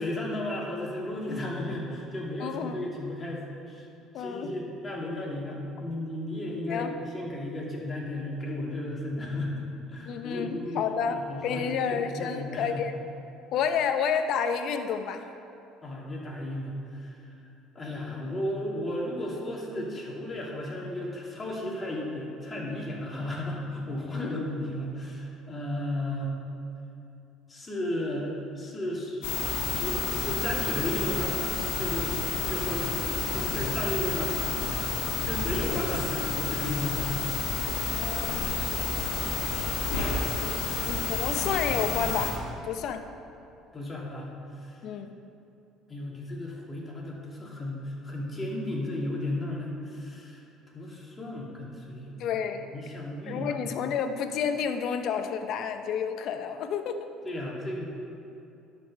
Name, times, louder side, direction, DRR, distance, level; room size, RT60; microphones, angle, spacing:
voice 1, 0.0-3.9 4.2-10.8 11.3-12.8 15.8-17.2 17.7-26.4 27.5-32.1 32.5-34.4 35.3-37.0 43.7-44.3 44.6-44.8 45.9-50.4 50.7-52.2 52.7-53.5 57.2-57.8, left 1 dB, 25° left, -3 dB, 2.6 m, -34 dB
voice 2, 2.4-2.9 4.1-4.5 6.7-7.0 10.1-12.9 13.5-15.2 24.1-24.4 37.9-38.8 40.3-40.5 40.9-43.0 44.8-45.1 52.2-52.6 53.3-57.1, left 7 dB, 65° left, 8 dB, 0.8 m, -30 dB
sound 1, 29.2-42.3, left 5 dB, 85° left, 1.6 m, -30 dB
11.0 x 5.4 x 6.6 m, 2.8 s
supercardioid pair, 90°, 0 cm